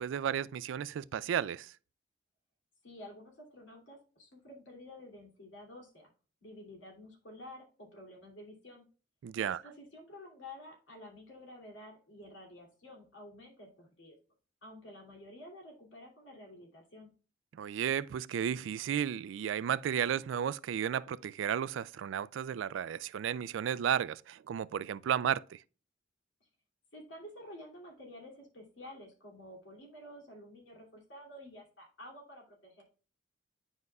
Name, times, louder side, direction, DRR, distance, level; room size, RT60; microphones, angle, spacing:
voice 1, 0.0-1.7 9.2-9.6 17.5-25.6, right 9 dB, 75° right, 0.3 m, -33 dB
voice 2, 2.8-6.1 6.4-8.8 9.4-14.2 14.6-17.1 26.9-32.8, left 1 dB, 70° left, 2.7 m, -51 dB
9.6 x 5.3 x 2.3 m
head